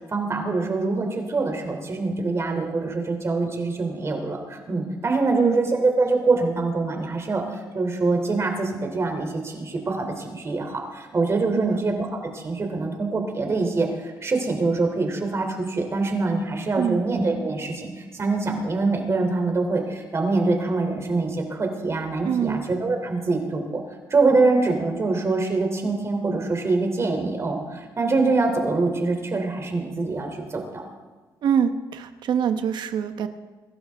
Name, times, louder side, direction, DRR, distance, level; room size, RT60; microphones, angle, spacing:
voice 1, 0.1-23.8 24.1-30.9, right 3 dB, 35° right, 3 dB, 3.1 m, -24 dB
voice 2, 5.3-5.6 11.5-11.8 16.8-17.0 22.2-22.7 31.4-33.3, right 8 dB, 70° right, 9 dB, 1.0 m, -24 dB
23.5 x 12.0 x 3.6 m, 1.3 s
cardioid pair, 95°, 8 cm